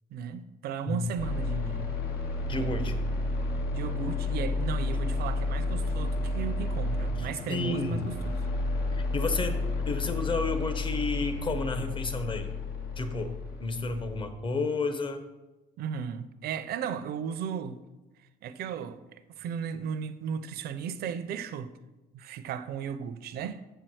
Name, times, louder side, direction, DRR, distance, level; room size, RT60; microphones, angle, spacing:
voice 1, 0.1-1.9 2.5-3.0 3.7-8.4 15.8-17.8 18.4-21.7 22.1-23.6, right 7 dB, 70° right, 0.5 m, -35 dB
sound 1, 1.2-14.3, left 2 dB, 75° left, 1.2 m, -31 dB
voice 2, 2.5-2.9 7.2-8.1 8.9-12.5 13.0-13.3 13.6-15.2, left 3 dB, 30° left, 0.9 m, -31 dB
7.1 x 4.5 x 6.2 m
cardioid pair, 110°, 17 cm